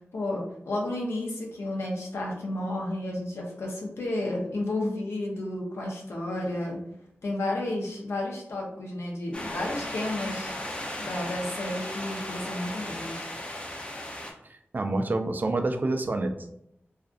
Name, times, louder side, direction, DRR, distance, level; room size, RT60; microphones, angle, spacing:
voice 1, 0.1-6.8 7.2-10.5 11.0-13.3, left 1 dB, 90° left, -1 dB, 0.6 m, -32 dB
sound 1, 9.3-14.3, left 1 dB, 25° left, 0.5 m, -36 dB
voice 2, 14.7-16.5, right 2 dB, 45° right, 6 dB, 0.3 m, -27 dB
2.5 x 2.4 x 2.3 m, 0.75 s
wide cardioid pair, 70°, 4 cm